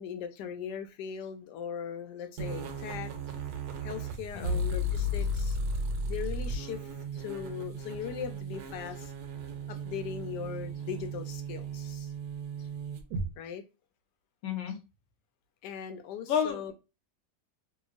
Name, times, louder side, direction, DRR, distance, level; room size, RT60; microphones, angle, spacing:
voice 1, 0.0-3.1 3.8-5.6 6.1-9.1 9.7-12.1 12.6-12.7 13.4-13.6 15.6-16.7, left 8 dB, 85° left, 1.2 m, -39 dB
sound 1, 2.4-13.3, equal, 75° right, 1.1 m, -35 dB
voice 2, 14.4-14.8 16.3-16.7, left 8 dB, 60° left, 0.9 m, -30 dB
2.9 x 2.5 x 2.4 m
omnidirectional pair, 1.8 m